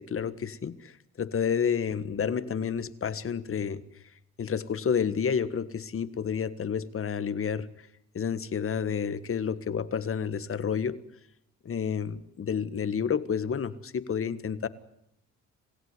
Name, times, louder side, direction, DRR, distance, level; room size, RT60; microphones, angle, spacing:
voice 1, 0.0-3.8 4.4-7.7 8.1-11.0 11.6-14.7, left 7 dB, 45° left, 14 dB, 1.6 m, -30 dB
27.5 x 16.0 x 9.7 m, 0.78 s
cardioid pair, 90°, 30 cm